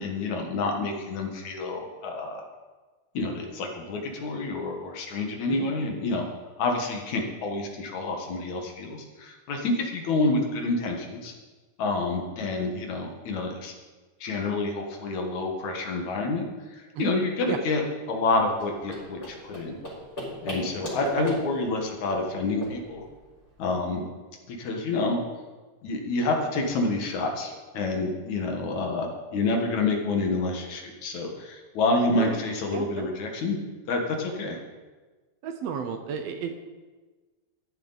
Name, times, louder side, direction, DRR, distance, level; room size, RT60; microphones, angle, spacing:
voice 1, 0.0-2.4 3.1-6.3 6.6-11.3 11.8-13.7 14.2-16.5 16.7-17.8 18.1-19.8 20.4-23.0 23.6-24.0 24.5-25.2 25.8-33.6 33.9-34.6, left 3 dB, 70° left, 2 dB, 2.8 m, -28 dB
sound 1, 18.5-23.7, equal, 30° left, 4.8 m, -38 dB
voice 2, 32.1-32.4 32.7-33.1 35.4-36.6, right 7 dB, 70° right, 6 dB, 1.6 m, -33 dB
13.5 x 11.0 x 4.0 m, 1.3 s
omnidirectional pair, 3.5 m